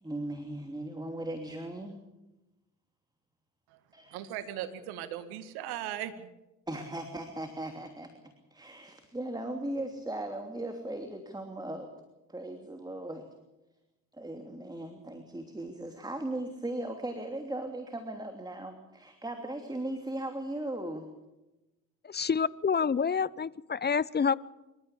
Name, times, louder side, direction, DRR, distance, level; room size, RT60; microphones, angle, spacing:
voice 1, 0.0-2.0 3.9-4.2 6.7-8.1 8.5-11.9 12.3-13.3 14.1-21.0, right 1 dB, 10° right, 5 dB, 3.0 m, -38 dB
voice 2, 4.1-6.3, right 11 dB, 75° right, 11 dB, 2.0 m, -38 dB
voice 3, 22.1-24.3, left 6 dB, 25° left, 20 dB, 0.8 m, -28 dB
26.0 x 13.5 x 8.5 m, 0.99 s
hypercardioid pair, 50°, 39 cm